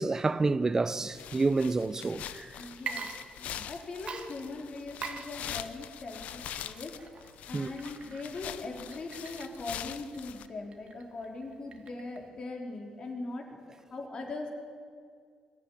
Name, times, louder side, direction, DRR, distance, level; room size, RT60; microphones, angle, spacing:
voice 1, 0.0-2.5 7.5-7.7, right 3 dB, 20° right, 0.6 m, -28 dB
sound 1, 1.1-10.5, left 10 dB, 85° left, 0.8 m, -43 dB
voice 2, 2.6-3.1 3.4-6.9 7.5-14.5, left 3 dB, 40° left, 3.8 m, -40 dB
Water / Liquid, 2.7-3.7 4.1-12.3, right 5 dB, 50° right, 1.8 m, -44 dB
21.0 x 13.5 x 10.0 m
cardioid pair, 135°, 2 cm